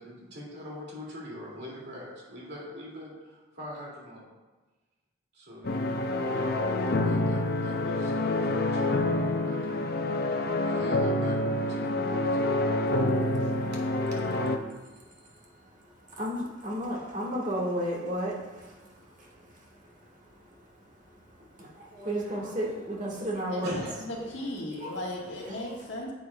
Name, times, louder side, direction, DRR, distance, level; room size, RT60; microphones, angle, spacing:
voice 1, 0.0-4.2 5.3-5.8 6.7-9.8 10.6-12.4 13.4-13.5 14.1-14.2 23.6-23.9, equal, 55° right, -4 dB, 2.4 m, -42 dB
sound 1, 5.6-14.6, left 2 dB, 50° left, 0.5 m, -27 dB
voice 2, 13.2-13.6 14.7-20.7 21.2-23.7 24.8-24.9 25.5-25.7, equal, 40° right, -3 dB, 1.7 m, -35 dB
voice 3, 23.5-26.1, left 1 dB, 65° left, -2 dB, 1.6 m, -36 dB
9.3 x 8.3 x 2.3 m, 1.2 s
head